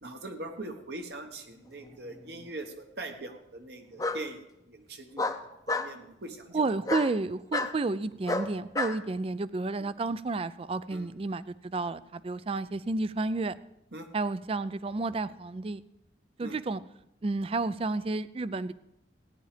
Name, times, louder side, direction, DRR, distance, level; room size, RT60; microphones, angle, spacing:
voice 1, 0.0-5.3 5.7-6.7 10.9-11.0 13.9-14.1 16.4-16.6, right 2 dB, 60° right, 5 dB, 1.2 m, -42 dB
Bark, 1.8-2.5 4.0-4.2 5.2-5.9 6.8-7.1 7.5-7.7 8.3-9.0, left 3 dB, 20° left, 0.6 m, -30 dB
voice 2, 6.5-13.5 14.1-15.8 16.4-16.8 17.2-18.7, right 3 dB, 30° right, 17 dB, 0.4 m, -31 dB
15.0 x 10.0 x 5.0 m, 0.83 s
head